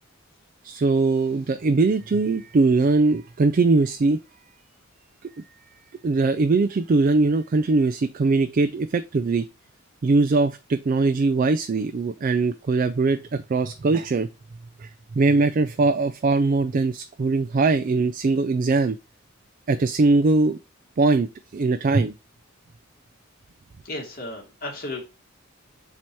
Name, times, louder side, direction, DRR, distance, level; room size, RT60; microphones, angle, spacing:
voice 1, 0.6-4.2 6.0-9.5 10.0-14.3 14.8-19.0 19.7-20.6 21.0-22.1, right 3 dB, 40° right, 10 dB, 0.3 m, -21 dB
voice 2, 23.8-25.0, left 2 dB, 45° left, -1 dB, 2.5 m, -34 dB
7.4 x 2.9 x 4.6 m, 0.28 s
head